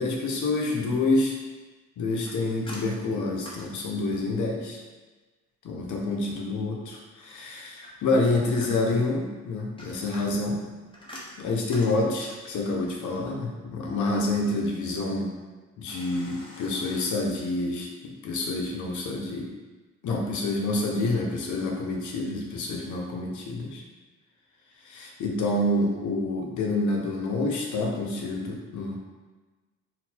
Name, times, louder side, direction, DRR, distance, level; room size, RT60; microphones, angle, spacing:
voice 1, 0.0-1.4 2.0-4.8 5.6-10.6 11.4-15.3 15.8-19.5 20.0-23.8 24.8-29.0, left 2 dB, 75° left, 0 dB, 0.9 m, -28 dB
sound 1, 2.2-4.5 7.8-9.1 9.6-12.6 15.9-17.0, left 1 dB, 15° left, 1.0 m, -46 dB
4.0 x 2.2 x 4.3 m, 1.3 s
cardioid pair, 90°, 30 cm